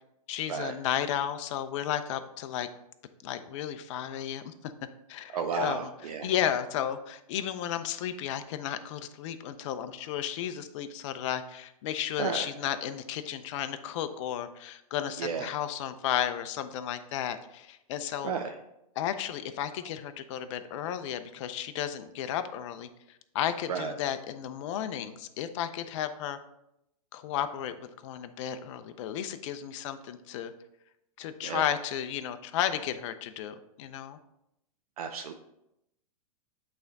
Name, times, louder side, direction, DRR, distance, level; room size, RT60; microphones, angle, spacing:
voice 1, 0.3-2.7 3.2-4.7 5.1-5.9 6.2-18.3 19.0-22.9 23.3-26.4 27.1-27.7 28.0-30.5 31.2-34.2, left 10 dB, 55° left, 9 dB, 0.6 m, -33 dB
voice 2, 5.3-6.3 12.2-12.5 15.2-15.5 18.2-18.5 23.7-23.9 31.4-31.6 35.0-35.3, right 6 dB, 80° right, 4 dB, 0.6 m, -32 dB
8.3 x 3.4 x 4.0 m, 0.83 s
hypercardioid pair, 125°, 19 cm